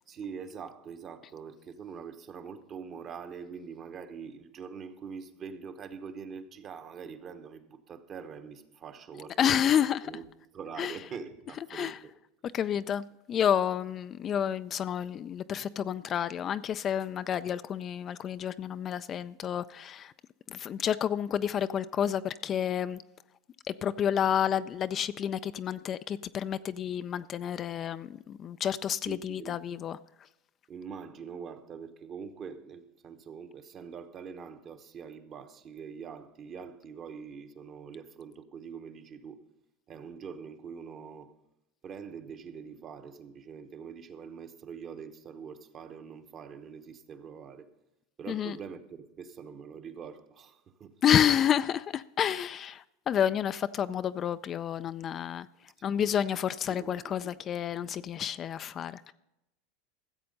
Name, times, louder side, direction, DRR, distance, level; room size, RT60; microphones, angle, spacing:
voice 1, 0.1-9.6 10.0-10.3 10.5-12.1 28.2-28.6 29.0-29.6 30.7-39.4 39.9-41.3 41.8-47.7 48.2-50.9 56.7-57.4, right 6 dB, 35° right, 1.1 m, -44 dB
voice 2, 9.4-10.1 10.8-11.0 11.7-12.0 12.5-20.1 20.5-23.0 23.7-30.0 48.3-48.6 51.0-55.5 55.8-59.1, left 9 dB, 35° left, 0.3 m, -30 dB
14.5 x 7.6 x 5.3 m
supercardioid pair, 110°, 0 cm